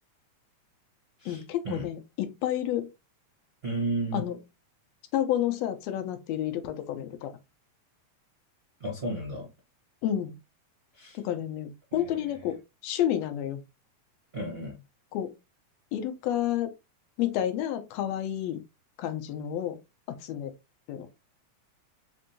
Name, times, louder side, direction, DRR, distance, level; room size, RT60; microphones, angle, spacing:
voice 1, 1.3-2.9 4.1-4.4 5.1-7.3 10.0-10.4 11.1-13.6 15.1-15.3 15.9-16.7 17.2-18.6 19.0-19.8 20.1-20.5 20.9-21.1, left 11 dB, 75° left, 1.7 m, -30 dB
voice 2, 3.6-4.2 8.8-9.5 11.0-11.2 11.9-12.1 14.3-14.8, right 2 dB, 55° right, 0.6 m, -33 dB
5.2 x 2.6 x 2.6 m
omnidirectional pair, 3.4 m